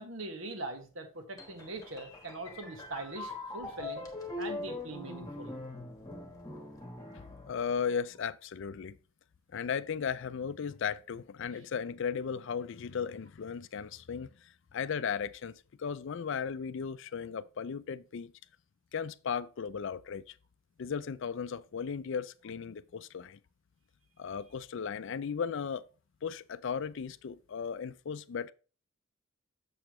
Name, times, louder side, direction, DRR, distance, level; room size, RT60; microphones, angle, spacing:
voice 1, 0.0-4.1 4.4-5.5, right 2 dB, 70° right, 1.4 m, -42 dB
sound 1, 1.4-8.1, left 2 dB, 15° left, 1.2 m, -42 dB
voice 2, 7.5-9.0 9.5-14.3 14.7-18.3 18.9-20.3 20.8-23.4 24.2-25.8 26.2-28.5, left 6 dB, 60° left, 0.4 m, -36 dB
7.0 x 6.6 x 3.0 m
head